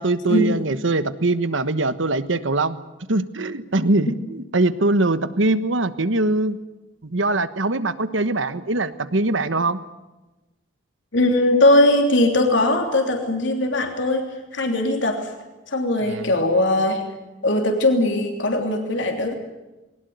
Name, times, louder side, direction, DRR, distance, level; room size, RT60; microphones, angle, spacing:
voice 1, 0.0-2.8 3.1-6.6 7.0-9.8 16.0-16.3, right 2 dB, 80° right, 12 dB, 1.3 m, -22 dB
voice 2, 11.1-15.3 15.7-17.0 17.4-19.4, left 1 dB, 70° left, 3 dB, 3.2 m, -20 dB
22.0 x 19.0 x 9.5 m, 1.1 s
head